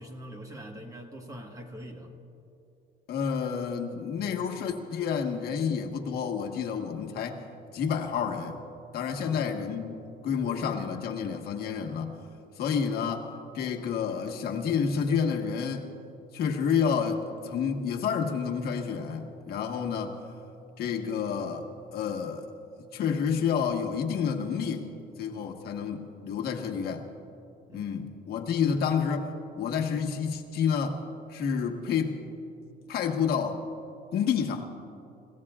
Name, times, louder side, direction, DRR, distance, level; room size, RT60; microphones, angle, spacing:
voice 1, 0.0-2.1 9.1-9.4 27.7-28.0, equal, 20° right, 3 dB, 1.4 m, -43 dB
voice 2, 3.1-7.4 7.7-8.6 8.9-12.2 12.6-13.3 13.5-15.9 16.3-20.2 20.8-21.7 21.9-22.4 22.9-24.9 25.2-27.0 27.7-31.0 31.3-32.2 32.9-33.6 34.1-34.7, left 6 dB, 65° left, 3 dB, 1.4 m, -29 dB
30.0 x 16.5 x 2.4 m, 2.8 s
cardioid pair, 145°, 17 cm